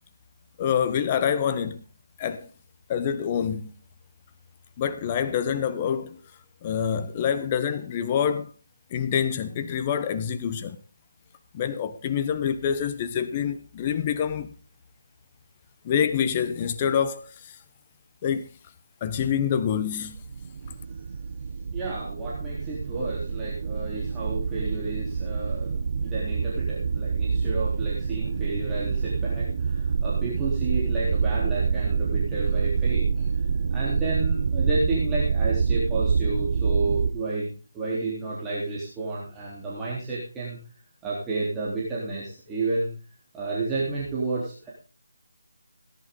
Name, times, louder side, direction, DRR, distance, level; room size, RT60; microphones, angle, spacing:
voice 1, 0.6-1.8 2.2-2.5 2.9-3.7 4.8-6.2 6.6-8.5 8.9-10.8 11.5-14.5 15.8-17.6 18.2-18.5 19.0-20.2, left 8 dB, 25° left, 0.9 m, -26 dB
sound 1, 20.1-37.1, right 5 dB, 45° right, 0.7 m, -26 dB
voice 2, 21.7-33.4 33.7-40.6 41.0-42.9 43.3-44.7, right 3 dB, 10° right, 3.4 m, -31 dB
18.0 x 11.0 x 3.8 m
figure-of-eight pair, 160°, 0 cm